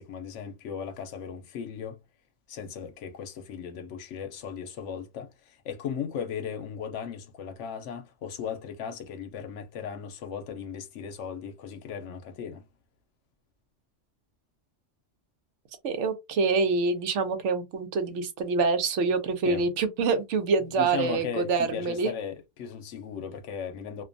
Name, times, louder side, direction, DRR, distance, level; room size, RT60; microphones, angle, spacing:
voice 1, 0.0-2.0 2.5-12.6 19.4-19.7 20.8-24.0, left 7 dB, 85° left, 0.9 m, -37 dB
voice 2, 15.8-22.1, right 4 dB, 80° right, 1.0 m, -26 dB
2.5 x 2.2 x 2.5 m
omnidirectional pair, 1.2 m